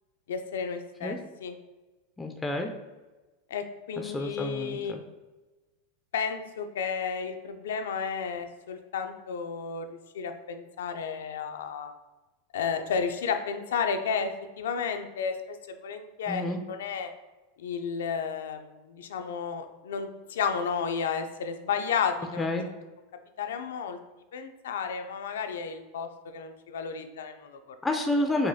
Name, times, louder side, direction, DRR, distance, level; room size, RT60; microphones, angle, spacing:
voice 1, 0.3-1.6 3.5-4.9 6.1-9.9 10.1-11.9 12.5-15.6 15.8-17.1 17.6-22.5 23.4-24.0 24.3-27.8, left 6 dB, 90° left, 7 dB, 0.4 m, -32 dB
voice 2, 2.2-2.7 4.0-5.0 16.3-16.6 22.4-22.7 27.8-28.5, left 1 dB, 10° left, 4 dB, 0.3 m, -29 dB
4.7 x 2.3 x 2.7 m, 1.2 s
supercardioid pair, 135°, 0 cm